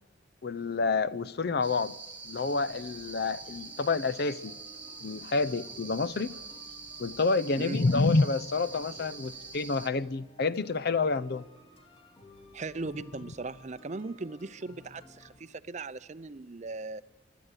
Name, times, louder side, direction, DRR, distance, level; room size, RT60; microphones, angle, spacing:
voice 1, 0.4-1.9 2.2-4.5 5.0-6.3 7.0-11.4, left 3 dB, 55° left, 0.6 m, -28 dB
sound 1, 1.6-9.9, right 4 dB, 10° right, 1.7 m, -45 dB
sound 2, 2.4-15.4, left 1 dB, 30° left, 2.1 m, -56 dB
voice 2, 12.5-17.0, right 3 dB, 40° right, 0.6 m, -38 dB
26.5 x 12.5 x 8.1 m
head